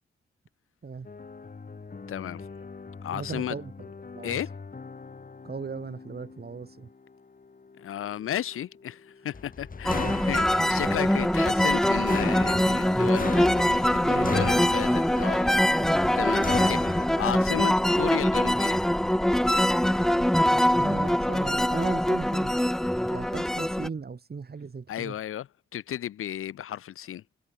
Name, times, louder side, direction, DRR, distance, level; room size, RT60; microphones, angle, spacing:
sound 1, 1.1-17.1, left 4 dB, 40° left, 3.5 m, -38 dB
voice 1, 2.1-2.5 3.0-3.5 4.2-4.5 7.8-15.4 15.8-18.8 24.9-25.5 25.7-27.2, left 11 dB, 85° left, 1.5 m, -34 dB
voice 2, 3.1-4.5 5.4-6.9 9.9-10.2 10.9-11.0 14.0-14.5 15.8-16.0 20.8-22.5 23.1-25.2, right 5 dB, 50° right, 4.8 m, -38 dB
sound 2, 9.8-23.9, equal, ahead, 0.4 m, -23 dB
cardioid pair, 60°, 21 cm